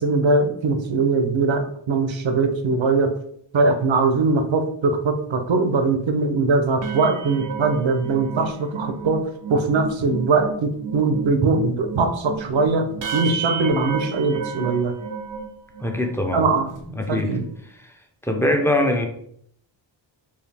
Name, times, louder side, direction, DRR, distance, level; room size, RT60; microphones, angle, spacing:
voice 1, 0.0-3.1 3.5-9.2 9.5-12.9 13.1-14.9 16.3-16.7 17.1-17.4, right 3 dB, 75° right, 7 dB, 0.7 m, -21 dB
sound 1, 6.8-16.2 16.6-16.8 17.1-17.4, right 6 dB, 45° right, 0.5 m, -32 dB
voice 2, 15.8-16.5 17.0-17.3 17.8-18.0 18.2-19.1, left 1 dB, 5° left, 3 dB, 0.6 m, -22 dB
4.6 x 2.7 x 3.4 m, 0.67 s
wide cardioid pair, 110°, 46 cm